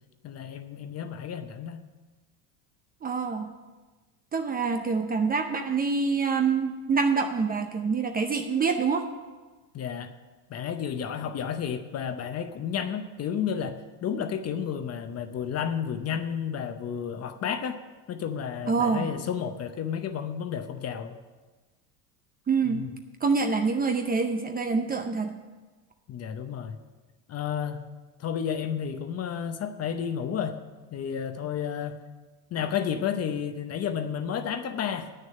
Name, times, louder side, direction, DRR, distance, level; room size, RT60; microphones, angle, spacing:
voice 1, 0.2-1.8 9.7-10.1 10.5-17.8 18.1-21.2 22.6-22.9 26.1-26.8 27.3-27.8 28.2-30.6 30.9-32.0 32.5-35.1, left 8 dB, 30° left, 9 dB, 0.8 m, -31 dB
voice 2, 3.0-3.5 4.3-9.0 18.7-19.1 22.5-22.9 23.2-25.3, right 5 dB, 20° right, 6 dB, 0.6 m, -26 dB
9.0 x 6.6 x 8.7 m, 1.3 s
supercardioid pair, 120°, 47 cm